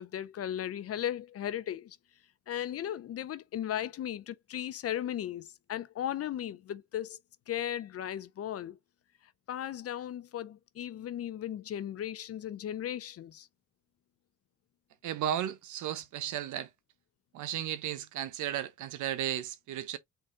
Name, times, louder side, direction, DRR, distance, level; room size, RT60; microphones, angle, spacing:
voice 1, 0.0-2.0 2.5-7.2 7.5-8.8 9.5-13.5, left 11 dB, 50° left, 0.5 m, -36 dB
voice 2, 15.0-16.7 17.3-20.0, right 11 dB, 80° right, 0.8 m, -34 dB
3.9 x 3.6 x 3.7 m
cardioid pair, 90°, 30 cm